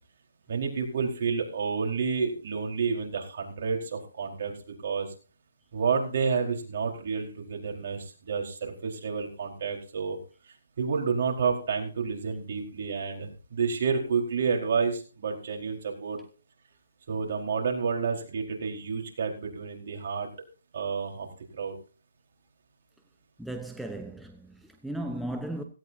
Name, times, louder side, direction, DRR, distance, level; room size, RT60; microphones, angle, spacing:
voice 1, 0.5-4.5 4.8-5.1 5.7-10.2 10.5-16.2 17.1-20.3 20.7-21.3 21.6-21.7, right 5 dB, 55° right, 4.5 m, -30 dB
voice 2, 23.4-25.6, right 1 dB, ahead, 0.9 m, -36 dB
17.0 x 16.5 x 2.8 m
hypercardioid pair, 150°, 0 cm